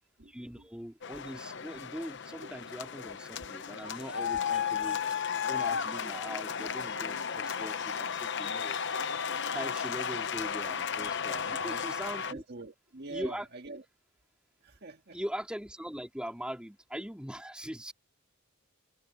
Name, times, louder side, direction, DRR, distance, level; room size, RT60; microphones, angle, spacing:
voice 1, 0.3-5.2 5.5-8.8 9.5-12.4 13.1-13.5 15.1-17.9, equal, 5° right, 2.4 m, -41 dB
sound 1, 1.0-12.3, left 7 dB, 60° left, 0.8 m, -34 dB
voice 2, 11.4-11.9 12.3-13.8 14.6-15.2, right 3 dB, 50° right, 1.7 m, -44 dB
head